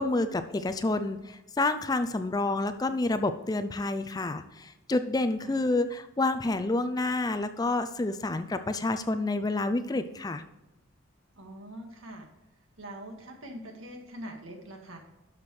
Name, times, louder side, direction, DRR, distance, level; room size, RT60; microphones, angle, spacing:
voice 1, 0.0-10.4, left 2 dB, 20° left, 10 dB, 0.4 m, -29 dB
voice 2, 11.4-12.3 12.8-15.0, right 1 dB, 80° right, 2 dB, 1.9 m, -43 dB
11.5 x 6.0 x 3.2 m, 0.98 s
head